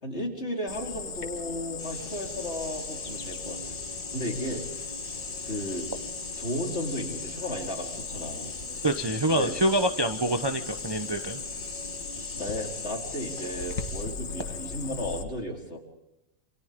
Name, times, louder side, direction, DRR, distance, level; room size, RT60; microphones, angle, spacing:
voice 1, 0.0-3.8 4.1-4.9 5.4-5.9 6.4-8.5 9.3-9.5 12.3-15.8, equal, 35° left, -1 dB, 4.5 m, -34 dB
Cricket, 0.7-15.2, left 5 dB, 80° left, 2.3 m, -37 dB
sound 1, 1.8-14.0, equal, 5° left, 6.5 m, -43 dB
voice 2, 8.8-11.4, right 1 dB, 25° right, 6 dB, 0.6 m, -26 dB
28.5 x 26.0 x 3.8 m, 0.89 s
omnidirectional pair, 2.0 m